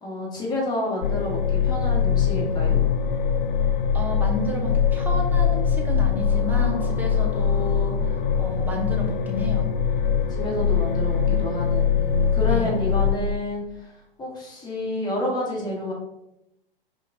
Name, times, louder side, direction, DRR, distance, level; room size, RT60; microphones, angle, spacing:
voice 1, 0.0-2.8 10.3-13.9 14.2-15.9, left 1 dB, 15° left, -3 dB, 1.2 m, -29 dB
sound 1, 1.0-13.2, left 7 dB, 55° left, 0.5 m, -22 dB
voice 2, 3.9-7.9 8.4-9.7 12.4-12.7, left 1 dB, 5° right, 0 dB, 0.6 m, -31 dB
5.7 x 2.4 x 3.4 m, 0.85 s
figure-of-eight pair, 110°, 30 cm